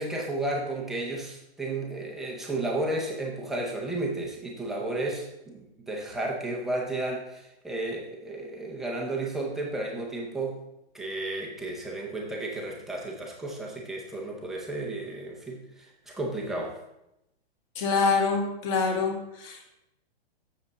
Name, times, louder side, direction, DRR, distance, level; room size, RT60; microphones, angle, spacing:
voice 1, 0.0-10.6 10.9-16.8, right 2 dB, ahead, -2 dB, 0.5 m, -33 dB
voice 2, 17.7-19.7, left 4 dB, 30° left, 1 dB, 1.5 m, -26 dB
7.6 x 6.4 x 4.0 m, 0.87 s
hypercardioid pair, 160°, 33 cm